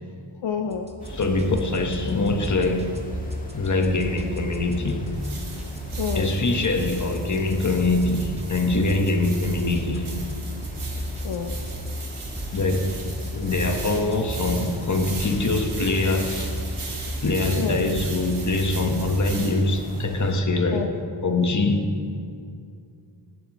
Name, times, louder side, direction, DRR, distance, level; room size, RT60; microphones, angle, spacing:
voice 1, 0.4-0.9 6.0-6.3 11.2-11.5 17.6-17.9 20.7-20.9, left 7 dB, 65° left, 4 dB, 0.8 m, -28 dB
sound 1, 0.7-19.1, equal, 15° right, 1.2 m, -34 dB
sound 2, 1.0-20.4, equal, 15° left, 1.8 m, -40 dB
voice 2, 1.1-2.9 3.5-5.1 6.1-10.1 12.5-12.9 13.3-16.5 17.2-20.9 21.2-21.9, left 2 dB, 35° left, 4 dB, 1.3 m, -23 dB
sound 3, 5.1-20.0, right 4 dB, 90° right, 2.6 m, -40 dB
18.5 x 11.0 x 3.1 m, 2.3 s
wide cardioid pair, 85°, 48 cm